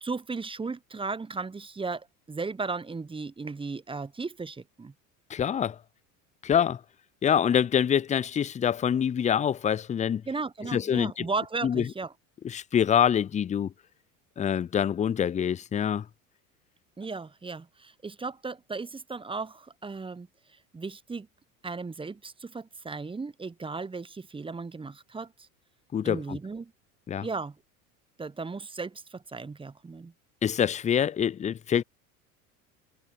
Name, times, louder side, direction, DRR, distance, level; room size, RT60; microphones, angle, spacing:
voice 1, 0.0-4.9 10.3-12.1 17.0-20.3 20.7-21.3 21.6-25.5 26.0-26.7 27.2-27.5 28.2-30.1, right 4 dB, 10° right, 0.9 m, -36 dB
voice 2, 5.3-5.8 6.4-6.8 7.2-10.2 10.7-11.3 11.6-11.8 12.4-13.7 14.4-16.1 25.9-26.4 27.1-27.3 30.4-31.8, left 8 dB, 15° left, 0.5 m, -25 dB
hypercardioid pair, 70°, 45 cm